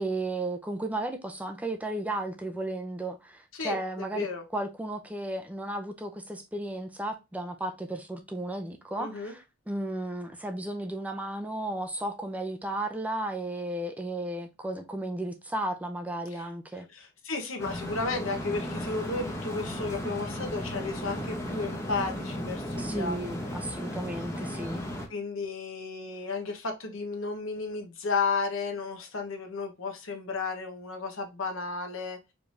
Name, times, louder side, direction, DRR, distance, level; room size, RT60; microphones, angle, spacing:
voice 1, 0.0-4.3 4.5-16.9 22.8-24.8, right 1 dB, 5° right, 0.5 m, -34 dB
voice 2, 3.5-4.4 9.0-9.3 16.3-16.4 16.9-23.2 23.4-23.6 25.1-32.2, left 4 dB, 75° left, 1.1 m, -33 dB
sound 1, 17.6-25.1, equal, 15° left, 0.9 m, -35 dB
4.9 x 3.3 x 2.6 m
head